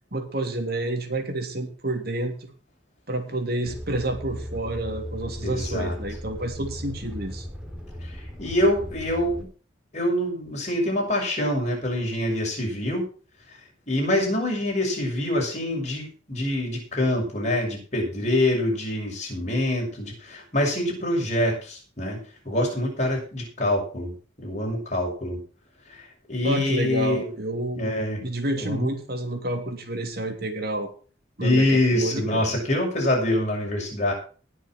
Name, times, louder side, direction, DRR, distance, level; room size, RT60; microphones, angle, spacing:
voice 1, 0.1-2.3 3.1-7.5 26.4-27.9 28.2-30.9 31.4-32.5, right 1 dB, 50° right, 4 dB, 2.9 m, -29 dB
sound 1, 3.6-9.4, equal, 5° right, 3.4 m, -37 dB
voice 2, 5.4-6.0 8.0-8.1 8.4-9.5 9.9-13.0 13.9-22.2 22.4-24.1 24.4-25.4 25.9-27.3 27.7-28.2 28.5-28.9 31.4-34.1, left 1 dB, 35° left, 0 dB, 6.6 m, -25 dB
20.5 x 6.8 x 4.6 m, 0.39 s
head